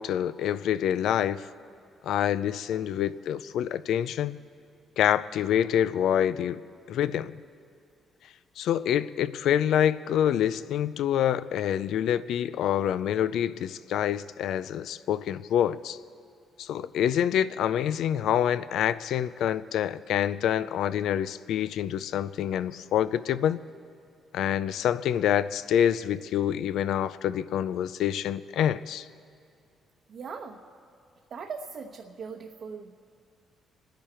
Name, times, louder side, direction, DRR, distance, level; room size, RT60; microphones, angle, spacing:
voice 1, 0.0-1.5 2.0-4.4 5.0-6.6 6.9-7.4 8.6-16.0 16.6-23.6 24.3-29.1, left 10 dB, 80° left, 15 dB, 0.4 m, -26 dB
voice 2, 30.1-30.6 31.3-32.9, right 5 dB, 60° right, 1 dB, 1.0 m, -39 dB
28.5 x 10.5 x 4.4 m, 2.4 s
cardioid pair, 90°, 0 cm